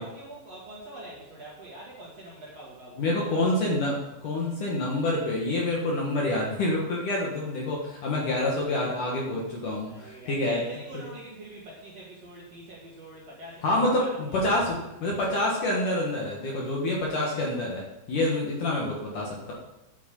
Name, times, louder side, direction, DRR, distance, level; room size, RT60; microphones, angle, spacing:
voice 1, 0.0-3.5 9.9-14.6 19.0-19.5, right 1 dB, 45° right, -5 dB, 2.3 m, -45 dB
voice 2, 3.0-10.6 13.6-19.5, left 1 dB, 60° left, -3 dB, 2.3 m, -27 dB
9.8 x 8.5 x 5.3 m, 0.94 s
omnidirectional pair, 5.3 m